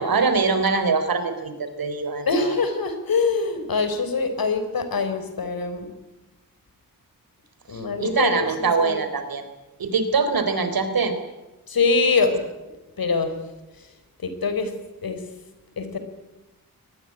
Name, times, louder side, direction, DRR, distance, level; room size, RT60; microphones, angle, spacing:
voice 1, 0.0-2.6 8.0-9.4 9.8-11.1, right 4 dB, 85° right, 9 dB, 4.1 m, -23 dB
voice 2, 2.2-5.9 7.7-9.0 11.7-12.4 13.0-13.3 14.2-14.7 15.0-15.2 15.8-16.0, left 4 dB, 80° left, 9 dB, 4.3 m, -24 dB
24.0 x 19.5 x 9.8 m, 1.0 s
wide cardioid pair, 130°, 35 cm